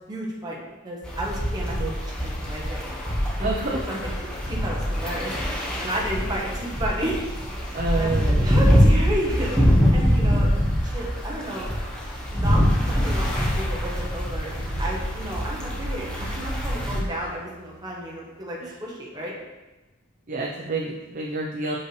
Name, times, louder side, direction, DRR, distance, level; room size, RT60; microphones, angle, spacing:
voice 1, 0.1-0.6 0.8-2.8 3.4-3.5 3.9-4.1 4.5-7.2 7.6-10.5 10.8-11.7 12.3-12.6 12.9-19.3, right 1 dB, 20° right, -4 dB, 1.2 m, -32 dB
sound 1, 1.0-17.0, equal, 5° left, 1.1 m, -24 dB
voice 2, 3.4-3.8 7.7-8.7 10.4-10.6 16.9-17.3 18.6-18.8 20.3-21.8, right 2 dB, 40° right, -2 dB, 0.6 m, -29 dB
sound 2, 14.5-18.6, right 2 dB, 90° right, 0.6 m, -45 dB
6.6 x 5.4 x 3.2 m, 1.1 s
head